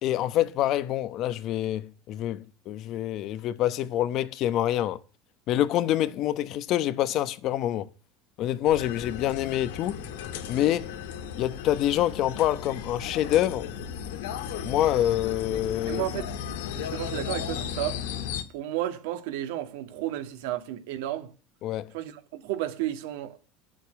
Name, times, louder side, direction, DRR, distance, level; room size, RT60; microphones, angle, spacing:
voice 1, 0.0-5.0 5.5-7.9 8.4-10.0 10.5-10.9 11.4-13.7 14.6-16.0 21.6-21.9, left 12 dB, 55° left, 1.0 m, -26 dB
sound 1, 8.6-18.4, left 8 dB, 85° left, 1.7 m, -35 dB
voice 2, 15.9-16.3 16.7-18.0 18.5-21.3 21.9-23.4, right 13 dB, 80° right, 1.9 m, -32 dB
9.6 x 7.5 x 9.4 m
supercardioid pair, 115°, 0 cm